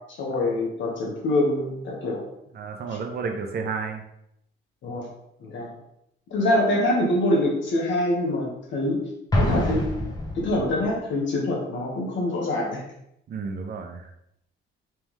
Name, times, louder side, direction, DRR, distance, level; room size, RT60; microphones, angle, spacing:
voice 1, 0.2-2.2 4.8-5.1 5.4-5.7 6.3-9.0 9.3-9.8 10.3-12.8, left 1 dB, 70° left, -1 dB, 1.3 m, -25 dB
voice 2, 2.5-4.0 13.3-14.1, right 5 dB, 55° right, 4 dB, 0.7 m, -31 dB
Explosion, 9.3-10.9, left 1 dB, 20° left, 1.0 m, -25 dB
3.5 x 3.4 x 3.1 m, 0.77 s
cardioid pair, 90°, 20 cm